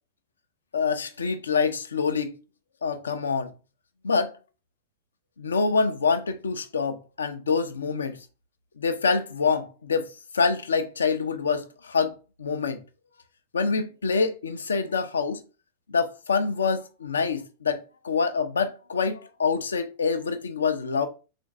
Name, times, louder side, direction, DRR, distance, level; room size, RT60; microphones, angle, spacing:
voice 1, 0.7-2.3 2.8-3.5 4.0-4.3 5.4-8.2 8.8-10.1 10.3-12.8 13.5-15.4 15.9-21.1, left 5 dB, 70° left, 0.5 m, -26 dB
3.8 x 2.5 x 4.6 m
figure-of-eight pair, 90°, 0 cm